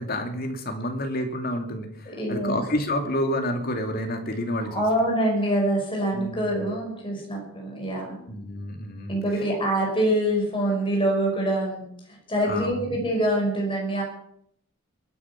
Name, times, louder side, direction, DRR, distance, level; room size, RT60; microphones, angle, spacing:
voice 1, 0.0-4.8 6.1-6.5 8.3-9.4 12.4-13.0, left 1 dB, 45° left, 4 dB, 2.5 m, -29 dB
voice 2, 2.1-2.6 4.7-8.2 9.1-14.0, right 1 dB, 25° left, 0 dB, 5.8 m, -25 dB
21.5 x 9.8 x 5.9 m, 0.70 s
head